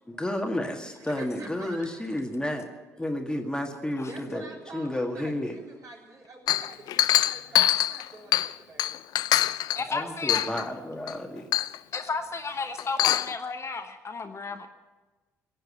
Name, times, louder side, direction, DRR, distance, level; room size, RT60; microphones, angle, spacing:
voice 1, 0.1-2.7 3.0-5.6 9.9-11.5, left 1 dB, 10° left, 3 dB, 1.8 m, -31 dB
voice 2, 1.0-2.2 4.1-9.2, right 3 dB, 45° right, -1 dB, 3.6 m, -47 dB
Chink clink, 6.5-8.5 8.8-9.8 10.3-10.7 11.1-11.2 11.5-12.0 12.8-13.3, left 13 dB, 60° left, 0.4 m, -24 dB
voice 3, 9.7-10.5 11.9-14.7, left 4 dB, 35° left, 6 dB, 1.2 m, -33 dB
17.0 x 7.8 x 9.7 m, 1.2 s
hypercardioid pair, 50°, 8 cm